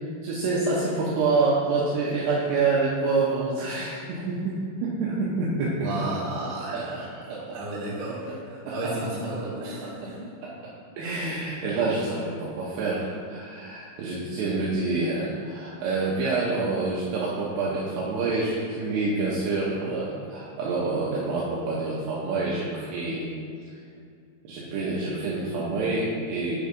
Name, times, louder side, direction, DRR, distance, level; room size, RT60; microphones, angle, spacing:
voice 1, 0.2-5.9 6.7-7.7 8.7-8.9 9.8-9.9 10.4-10.5 11.0-23.3 24.4-26.6, right 3 dB, 80° right, -6 dB, 2.4 m, -27 dB
voice 2, 5.8-10.3, right 2 dB, 55° right, -7 dB, 2.5 m, -33 dB
8.1 x 3.9 x 5.1 m, 2.3 s
omnidirectional pair, 5.8 m